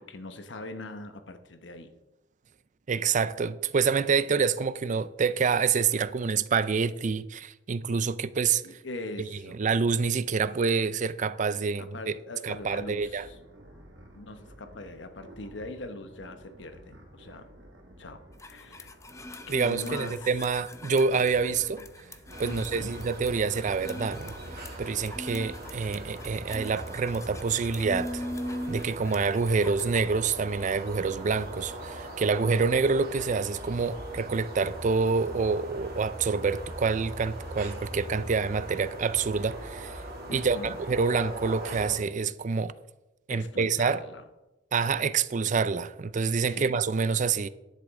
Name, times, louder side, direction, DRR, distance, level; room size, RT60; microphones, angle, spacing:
voice 1, 0.0-1.9 8.6-9.7 11.8-13.4 14.1-17.5 18.0-18.9 19.5-20.3 22.4-22.9 40.3-40.8 43.3-44.2 46.4-46.8, left 2 dB, 80° left, 1.1 m, -41 dB
voice 2, 2.9-8.6 9.6-12.1 12.4-13.3 19.5-21.8 22.4-24.3 24.8-28.3 28.7-40.0 40.3-42.7 43.3-44.0 44.7-47.5, right 5 dB, 45° right, 0.4 m, -27 dB
sound 1, 12.5-29.3, right 1 dB, 75° right, 2.0 m, -52 dB
sound 2, 18.4-30.0, left 1 dB, 15° left, 0.7 m, -41 dB
sound 3, 22.3-41.9, right 1 dB, 60° right, 2.6 m, -40 dB
11.5 x 10.0 x 3.7 m
head